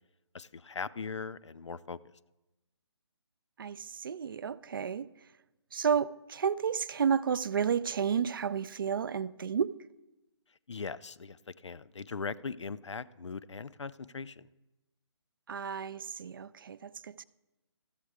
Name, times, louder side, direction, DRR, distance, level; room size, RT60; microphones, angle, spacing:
voice 1, 0.3-2.0 10.7-14.5, left 5 dB, 80° left, 0.5 m, -40 dB
voice 2, 3.6-5.1 5.7-9.7 15.5-17.2, right 7 dB, 50° right, 0.4 m, -31 dB
13.5 x 7.8 x 4.8 m
figure-of-eight pair, 145°, 15 cm